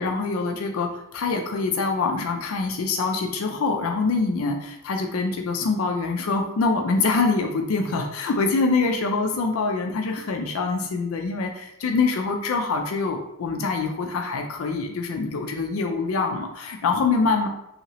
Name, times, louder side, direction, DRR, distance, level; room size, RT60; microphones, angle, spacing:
voice 1, 0.0-17.5, left 4 dB, 75° left, 4 dB, 0.4 m, -25 dB
2.8 x 2.8 x 2.9 m, 0.84 s
head